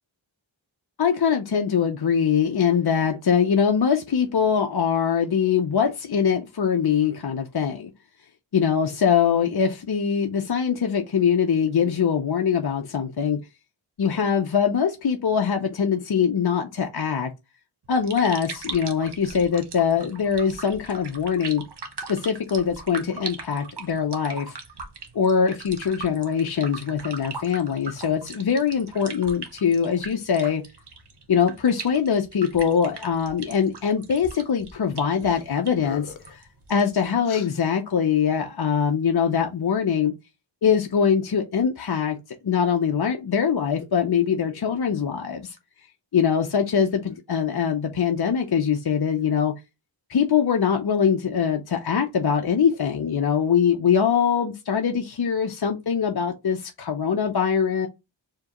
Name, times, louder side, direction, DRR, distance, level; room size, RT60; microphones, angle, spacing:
voice 1, 1.0-7.9 8.5-13.4 14.0-17.3 17.9-21.6 22.1-24.6 25.1-30.6 31.3-36.4 36.7-40.1 40.6-42.2 42.4-45.6 46.1-49.5 50.1-57.9, left 7 dB, 55° left, 0.7 m, -23 dB
sound 1, 17.8-37.0, right 4 dB, 55° right, 1.0 m, -40 dB
sound 2, 35.2-35.4 35.7-36.4 37.2-37.5, left 6 dB, 85° left, 0.8 m, -39 dB
4.7 x 3.0 x 2.9 m
wide cardioid pair, 60°, 47 cm